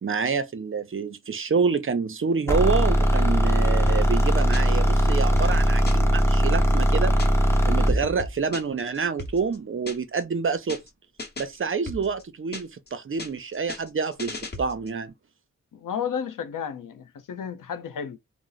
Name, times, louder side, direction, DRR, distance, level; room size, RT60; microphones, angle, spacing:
voice 1, 0.0-7.1 7.7-10.8 11.4-15.1, right 5 dB, 40° right, 0.5 m, -27 dB
sound 1, 2.5-8.0, equal, 10° left, 0.7 m, -20 dB
sound 2, 3.9-4.9 5.2-7.6 7.9-10.2 10.5-10.9 11.2-12.9 13.2-15.0, left 2 dB, 30° left, 1.0 m, -38 dB
voice 2, 15.7-18.2, left 7 dB, 90° left, 0.7 m, -32 dB
2.8 x 2.0 x 3.8 m
wide cardioid pair, 85°, 31 cm